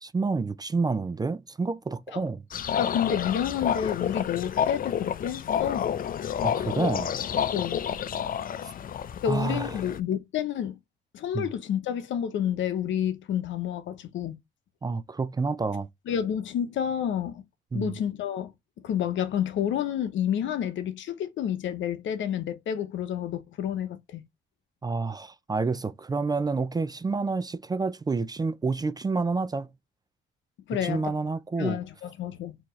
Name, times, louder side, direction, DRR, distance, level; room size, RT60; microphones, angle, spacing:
voice 1, 0.0-2.4 6.4-7.1 9.3-9.8 11.3-11.5 14.8-15.9 17.7-18.0 24.8-29.7 30.8-31.8, right 4 dB, 20° right, 0.3 m, -29 dB
sound 1, 2.5-10.0, left 9 dB, 45° left, 0.5 m, -29 dB
voice 2, 2.8-5.9 7.5-7.8 9.2-10.8 11.1-14.4 16.1-17.4 17.7-18.5 18.8-24.2 30.7-31.2 31.6-32.5, left 9 dB, 70° left, 0.8 m, -29 dB
4.4 x 2.9 x 3.1 m
cardioid pair, 90°, 20 cm